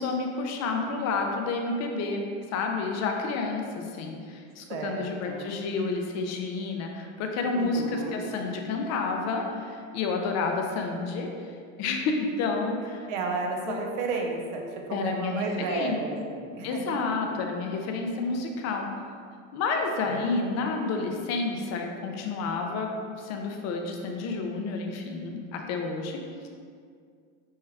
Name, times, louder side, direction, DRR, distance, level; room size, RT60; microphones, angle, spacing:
voice 1, 0.0-11.3 11.8-13.1 13.7-13.8 14.9-16.0 16.6-18.9 19.5-26.2, left 4 dB, 45° left, 3 dB, 0.6 m, -30 dB
voice 2, 4.7-5.5 7.5-8.2 13.1-17.2 20.0-20.3, right 3 dB, 65° right, 2 dB, 0.7 m, -33 dB
5.4 x 2.2 x 3.3 m, 2.2 s
supercardioid pair, 115°, 37 cm